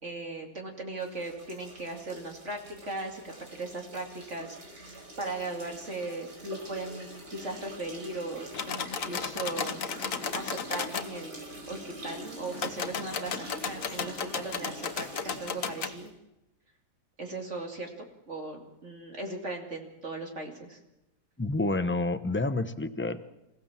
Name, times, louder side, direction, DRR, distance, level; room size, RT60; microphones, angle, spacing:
voice 1, 0.0-9.8 10.3-11.3 11.7-16.1 17.2-17.9 18.3-20.8, right 2 dB, 45° right, 2 dB, 2.9 m, -38 dB
sound 1, 1.0-16.1, right 1 dB, 85° right, 5.3 m, -45 dB
sound 2, 8.5-11.1 12.5-16.0, left 6 dB, 55° left, 1.4 m, -34 dB
voice 2, 21.4-23.2, left 2 dB, 10° left, 10 dB, 0.6 m, -29 dB
27.0 x 16.5 x 7.3 m, 0.93 s
omnidirectional pair, 1.7 m